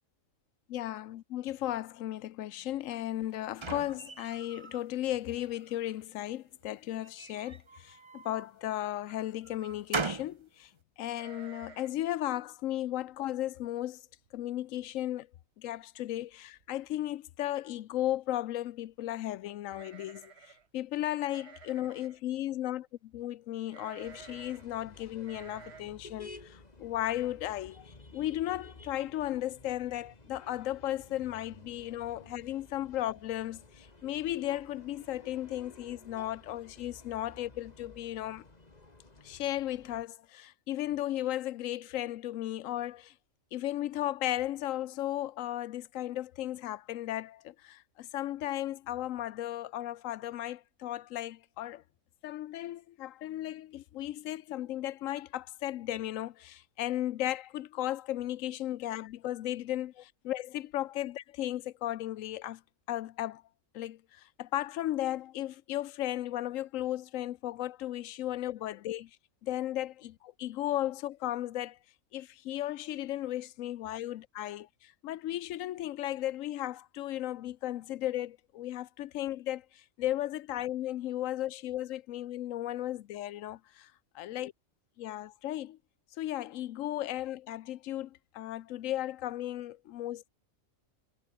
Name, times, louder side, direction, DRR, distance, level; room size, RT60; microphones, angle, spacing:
voice 1, 0.7-10.7 11.0-14.0 14.3-15.3 15.6-38.5 39.2-43.1 43.5-51.8 52.2-62.6 62.9-63.4 63.7-69.1 69.4-71.8 72.1-84.5 85.0-85.8 86.2-90.3, left 13 dB, 80° left, 1.0 m, -35 dB
sound 1, 2.9-4.8 5.3-6.0 7.0-8.5 9.1-10.4, right 4 dB, 25° right, 0.8 m, -40 dB
sound 2, 11.1-12.1 12.3-12.4 12.9-13.2 13.7-13.8 14.1-14.6 14.9-15.0 16.2-16.3 16.6-17.0 19.6-20.7 21.2-22.2 23.7-24.7 25.2-25.8, right 6 dB, 55° right, 1.6 m, -52 dB
sound 3, 24.0-40.0, left 2 dB, 30° left, 2.4 m, -54 dB
omnidirectional pair, 1.4 m